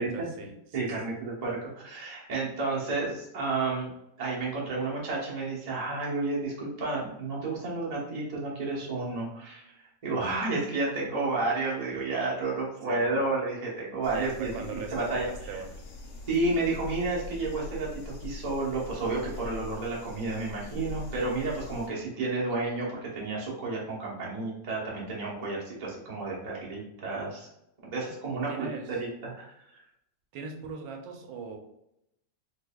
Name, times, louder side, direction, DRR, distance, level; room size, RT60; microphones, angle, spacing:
voice 1, 0.0-1.1 11.9-12.0 12.9-13.2 14.1-15.8 28.3-28.9 30.3-31.6, right 4 dB, 85° right, 3 dB, 1.4 m, -40 dB
voice 2, 0.7-3.9 4.2-9.6 10.0-15.3 16.3-27.5 27.9-28.7 29.0-29.5, right 3 dB, 35° right, -5 dB, 0.6 m, -31 dB
sound 1, 14.0-21.9, left 3 dB, 65° left, 1.1 m, -43 dB
3.9 x 2.9 x 2.2 m, 0.81 s
omnidirectional pair, 2.1 m